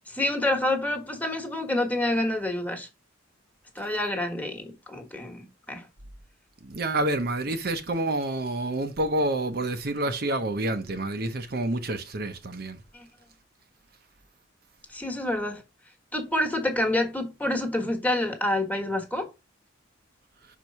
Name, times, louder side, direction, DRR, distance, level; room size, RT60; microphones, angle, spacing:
voice 1, 0.1-2.9 3.7-5.9 12.9-13.1 14.9-15.6 16.1-19.3, left 1 dB, 10° left, 1.4 m, -28 dB
voice 2, 6.7-12.8, right 1 dB, 50° right, 0.7 m, -28 dB
5.9 x 4.6 x 5.4 m
head